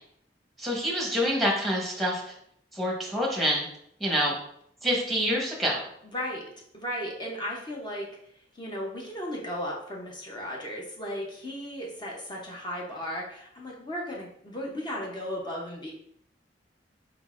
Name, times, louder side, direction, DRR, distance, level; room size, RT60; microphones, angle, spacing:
voice 1, 0.6-2.3 2.7-3.7 4.0-4.3 4.8-5.8, equal, ahead, -2 dB, 1.0 m, -26 dB
voice 2, 6.0-6.4 6.7-8.1 8.5-15.9, equal, 25° left, -2 dB, 0.7 m, -35 dB
4.5 x 3.8 x 2.4 m, 0.69 s
head